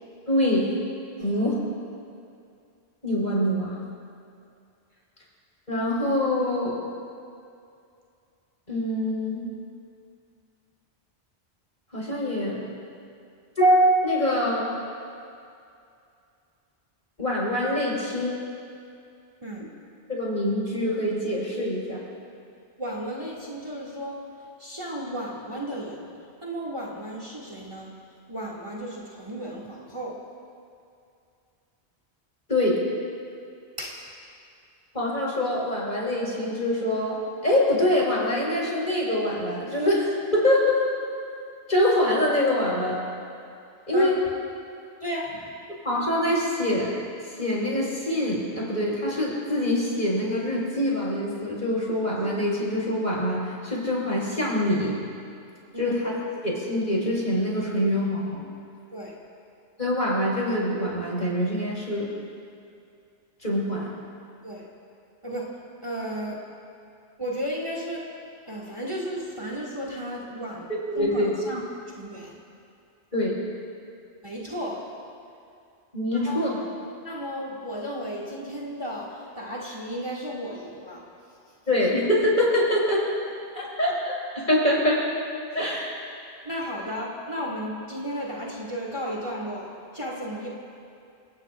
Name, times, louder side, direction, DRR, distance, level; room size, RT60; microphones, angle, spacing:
voice 1, 0.3-0.7 1.2-1.6 3.0-3.8 5.7-6.8 8.7-9.5 11.9-12.6 13.6-14.7 17.2-18.4 20.1-22.0 32.5-32.8 34.9-40.8 41.7-43.0 43.9-44.2 45.8-46.9 47.4-54.9 55.8-56.2 56.4-58.4 59.8-62.1 63.4-63.9 70.7-71.3 73.1-73.4 75.9-76.6 81.7-83.0 83.5-85.0 85.5-85.9, left 1 dB, 45° left, -5 dB, 5.1 m, -24 dB
voice 2, 22.8-24.2 24.6-26.1 26.4-27.9 28.3-30.2 33.8-34.0 43.9-44.1 45.0-45.5 55.7-55.9 58.9-59.1 64.4-64.7 65.2-65.5 65.8-66.4 67.2-68.0 68.5-70.7 71.0-71.6 72.0-72.4 74.2-74.8 76.3-76.5 77.0-79.1 79.4-81.0 86.4-90.5, equal, 25° right, -4 dB, 2.5 m, -34 dB
29.0 x 18.5 x 2.6 m, 2.5 s
omnidirectional pair, 1.1 m